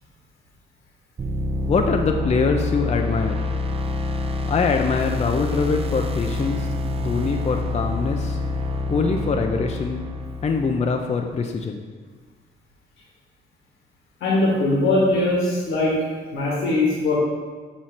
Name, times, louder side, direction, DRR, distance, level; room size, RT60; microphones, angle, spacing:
sound 1, 1.2-11.0, left 2 dB, 30° right, 0.6 m, -27 dB
voice 1, 1.7-3.4 4.4-6.7 7.0-8.4 8.9-10.0 10.4-11.8, left 4 dB, 35° left, 3 dB, 0.6 m, -23 dB
voice 2, 14.2-15.9 16.3-17.2, left 2 dB, 85° left, -5 dB, 2.1 m, -20 dB
6.2 x 6.1 x 4.1 m, 1.4 s
cardioid pair, 90°, 20 cm